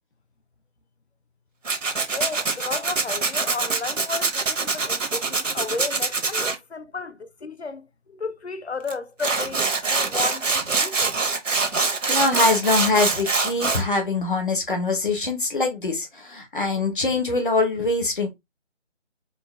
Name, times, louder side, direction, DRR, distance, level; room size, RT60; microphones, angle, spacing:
Tools, 1.7-6.6 8.9-9.0 9.2-13.8, right 4 dB, 80° right, 1.1 m, -24 dB
voice 1, 2.1-7.9 8.2-11.2, left 4 dB, 60° left, 0.7 m, -33 dB
voice 2, 12.1-18.3, left 3 dB, 40° left, 1.0 m, -23 dB
4.4 x 2.3 x 3.4 m
figure-of-eight pair, 180°, 37 cm